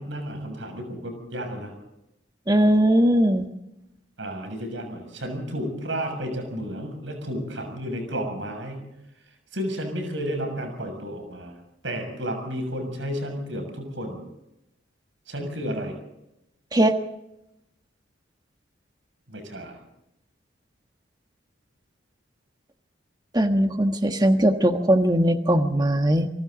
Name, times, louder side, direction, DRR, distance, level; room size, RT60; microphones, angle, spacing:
voice 1, 0.0-1.7 4.2-8.9 9.5-11.5 11.8-14.2 15.3-16.0 19.3-19.8, equal, 70° right, 5 dB, 6.7 m, -32 dB
voice 2, 2.5-3.5 16.7-17.0 23.3-26.3, right 1 dB, 20° right, 6 dB, 1.3 m, -20 dB
28.0 x 24.0 x 4.0 m, 0.86 s
head